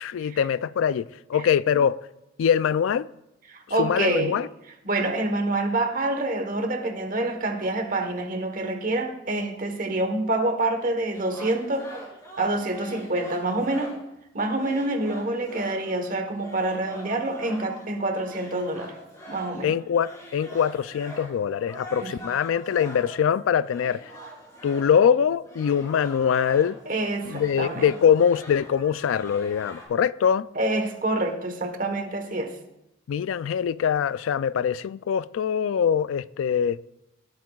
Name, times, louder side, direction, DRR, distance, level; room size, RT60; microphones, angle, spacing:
voice 1, 0.0-2.0 2.4-3.1 3.8-4.5 19.6-24.1 24.6-26.8 27.3-30.5 33.1-36.8, left 8 dB, 85° left, 0.3 m, -23 dB
voice 2, 3.5-4.4 4.8-11.9 12.4-13.9 14.3-18.9 19.3-19.7 22.0-22.1 26.9-27.8 30.5-32.6, right 2 dB, 45° right, 1.2 m, -27 dB
sound 1, 11.1-14.1 14.5-26.9 27.2-29.9, equal, 15° left, 3.0 m, -44 dB
17.0 x 8.2 x 2.4 m
head